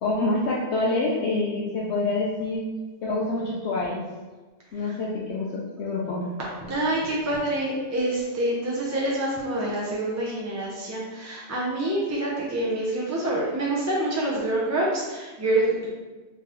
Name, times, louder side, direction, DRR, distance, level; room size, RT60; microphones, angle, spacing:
voice 1, 0.0-2.7 3.0-4.0 4.7-6.3, left 2 dB, 75° left, -4 dB, 0.9 m, -26 dB
voice 2, 6.6-15.9, right 1 dB, 20° right, -5 dB, 0.5 m, -26 dB
4.0 x 3.2 x 3.0 m, 1.3 s
omnidirectional pair, 1.2 m